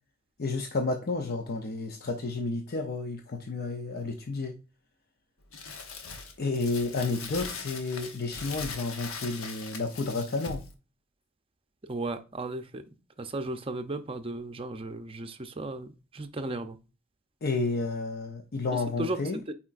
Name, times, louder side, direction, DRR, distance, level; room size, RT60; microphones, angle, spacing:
voice 1, 0.4-4.6 6.4-10.6 17.4-19.4, left 3 dB, 50° left, 4 dB, 0.7 m, -31 dB
Crumpling crinkling, 5.5-10.7, left 4 dB, 90° left, 1.0 m, -40 dB
voice 2, 11.8-12.8 13.2-16.8 18.7-19.2 19.5-19.6, right 2 dB, 25° right, 7 dB, 0.6 m, -35 dB
8.6 x 4.3 x 2.5 m, 0.32 s
head